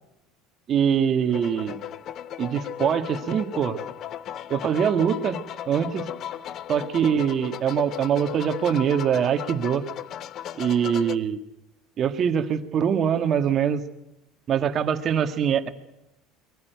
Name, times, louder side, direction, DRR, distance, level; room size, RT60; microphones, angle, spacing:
voice 1, 0.7-1.8 2.4-3.8 4.5-5.4 5.7-6.1 6.7-9.8 10.5-11.4 12.0-13.8 14.5-15.7, right 8 dB, 35° right, 8 dB, 1.6 m, -23 dB
sound 1, 1.3-11.2, left 11 dB, 40° left, 0.7 m, -36 dB
22.0 x 15.0 x 9.3 m, 0.90 s
cardioid pair, 140°, 0 cm